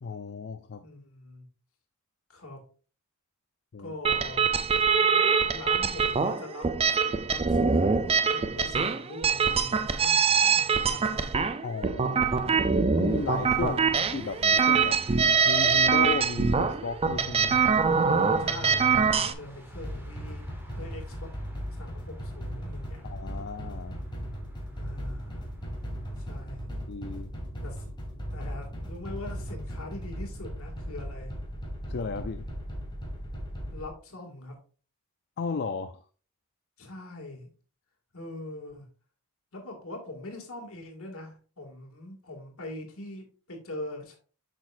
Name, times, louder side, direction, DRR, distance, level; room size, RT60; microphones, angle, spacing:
voice 1, 0.0-0.8 3.7-3.9 11.6-12.4 13.0-13.8 14.1-15.0 15.4-17.6 23.0-24.0 26.9-27.3 31.9-32.5 35.4-36.0, left 4 dB, 50° left, 9 dB, 0.5 m, -34 dB
voice 2, 0.8-1.4 2.3-2.6 3.8-4.5 5.4-6.7 7.3-11.3 12.5-12.6 13.6-14.0 18.4-20.5 20.8-21.3 21.8-23.1 24.7-25.5 26.2-26.7 27.6-27.8 28.3-31.3 33.7-34.6 36.8-37.5 38.1-38.9 39.5-44.2, left 2 dB, 65° left, 2 dB, 2.2 m, -42 dB
sound 1, 4.0-19.3, right 5 dB, 25° right, 0.5 m, -24 dB
sound 2, 13.1-26.5, equal, 10° right, 1.3 m, -47 dB
sound 3, 19.7-33.9, equal, 20° left, 2.0 m, -37 dB
8.1 x 6.3 x 2.5 m, 0.38 s
head